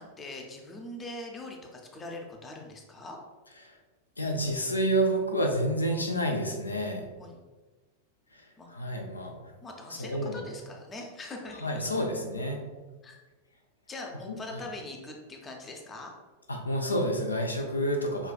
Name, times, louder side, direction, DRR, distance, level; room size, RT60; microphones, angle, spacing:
voice 1, 0.0-3.2 6.8-7.4 8.6-8.7 9.6-11.9 13.0-13.2 13.9-16.1, left 2 dB, 20° left, 2 dB, 0.5 m, -42 dB
voice 2, 4.2-7.1 8.3-9.4 9.9-10.4 11.6-12.6 14.3-14.6 16.5-18.3, right 1 dB, 80° left, 3 dB, 0.5 m, -29 dB
5.4 x 2.3 x 2.3 m, 1.3 s
figure-of-eight pair, 90°, 0 cm